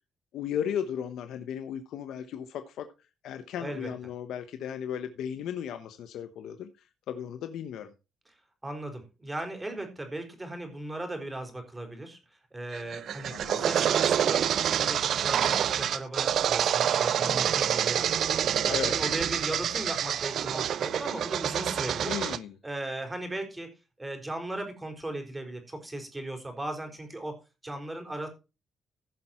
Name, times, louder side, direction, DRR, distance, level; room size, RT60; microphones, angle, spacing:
voice 1, 0.3-2.9 3.2-6.7 7.1-7.9 13.3-13.7 18.6-19.1 22.1-22.6, left 9 dB, 80° left, 8 dB, 1.0 m, -35 dB
voice 2, 3.6-3.9 8.6-12.2 12.5-14.4 14.8-18.1 18.4-22.2 22.6-23.7 24.0-27.3 27.6-28.3, right 1 dB, 15° right, 5 dB, 4.2 m, -37 dB
pneumatic drill, 12.7-22.4, right 9 dB, 65° right, 0.5 m, -27 dB
15.5 x 5.7 x 4.4 m, 0.30 s
cardioid pair, 90°, 0 cm